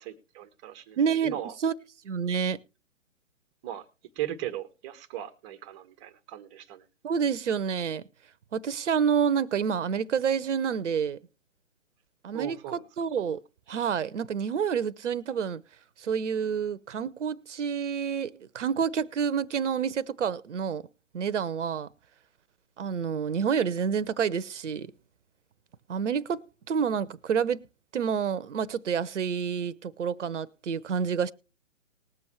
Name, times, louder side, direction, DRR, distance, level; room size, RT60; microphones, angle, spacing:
voice 1, 0.0-1.0 1.2-1.5 3.6-3.8 4.1-6.8 12.3-12.9, right 12 dB, 20° right, 1.1 m, -37 dB
voice 2, 1.0-1.7 2.0-2.6 7.0-8.0 8.5-11.2 12.2-13.4 13.7-15.6 16.0-20.9 21.1-21.9 22.8-24.9 25.9-27.6 27.9-31.3, right 7 dB, 65° right, 0.9 m, -28 dB
20.0 x 7.1 x 3.2 m
hypercardioid pair, 140°, 38 cm